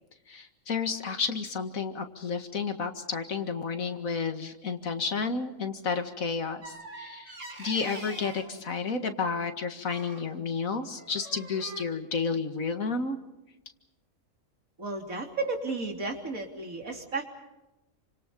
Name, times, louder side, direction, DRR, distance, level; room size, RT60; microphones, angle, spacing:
voice 1, 0.3-13.2, left 5 dB, 85° left, 7 dB, 2.2 m, -31 dB
sound 1, 6.6-8.5 9.8-10.3 10.9-11.8, right 2 dB, 65° right, 5.2 m, -43 dB
voice 2, 14.8-17.2, right 3 dB, 85° right, 2 dB, 3.7 m, -33 dB
29.0 x 26.0 x 5.3 m, 0.97 s
omnidirectional pair, 1.4 m